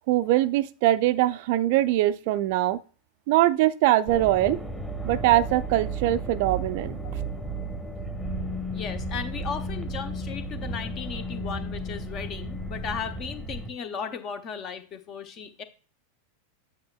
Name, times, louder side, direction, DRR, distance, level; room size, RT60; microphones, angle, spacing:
voice 1, 0.1-2.8 3.3-4.6 5.1-7.0, right 14 dB, 50° right, 14 dB, 0.3 m, -22 dB
sound 1, 4.1-13.7, right 1 dB, 10° left, 1.2 m, -33 dB
voice 2, 8.7-15.6, left 6 dB, 35° left, 10 dB, 0.8 m, -36 dB
8.5 x 5.9 x 2.3 m, 0.38 s
figure-of-eight pair, 90°, 0 cm